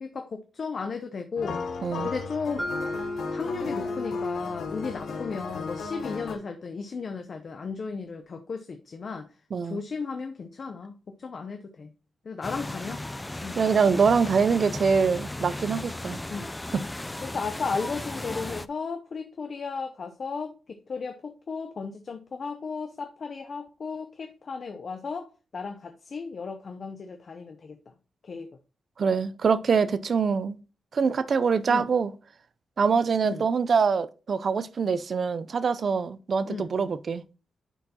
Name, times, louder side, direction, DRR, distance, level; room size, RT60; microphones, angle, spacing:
voice 1, 0.0-1.6 2.0-2.7 3.3-9.3 9.6-11.9 12.2-13.0 13.4-13.6 16.3-16.5 17.2-25.3 25.5-27.8 28.2-28.5 31.7-31.9 33.2-33.5 36.4-36.7, left 5 dB, 55° left, 0.7 m, -35 dB
sound 1, 1.4-6.4, left 5 dB, 75° left, 1.1 m, -35 dB
Mallet percussion, 2.6-6.6, left 1 dB, 15° right, 1.8 m, -37 dB
sound 2, 12.4-18.7, left 1 dB, 15° left, 0.4 m, -36 dB
voice 2, 13.6-16.2 16.7-16.8 29.0-30.6 30.9-32.1 32.8-37.2, right 5 dB, 60° right, 0.5 m, -24 dB
9.9 x 4.4 x 2.8 m
cardioid pair, 65°, 0 cm